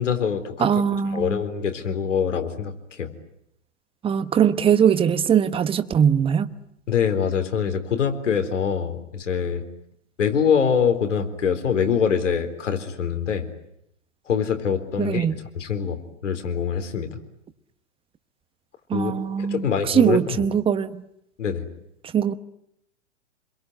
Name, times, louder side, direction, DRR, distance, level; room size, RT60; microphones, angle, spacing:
voice 1, 0.0-0.8 1.1-3.1 6.9-9.6 10.2-13.5 14.3-15.3 15.5-17.2 18.9-19.1 19.5-20.4 21.4-21.7, left 7 dB, 75° left, 4.0 m, -24 dB
voice 2, 0.6-1.4 4.0-6.5 15.0-15.4 18.9-21.0 22.1-22.3, right 8 dB, 15° right, 1.0 m, -21 dB
27.5 x 22.5 x 9.5 m
hypercardioid pair, 110°, 37 cm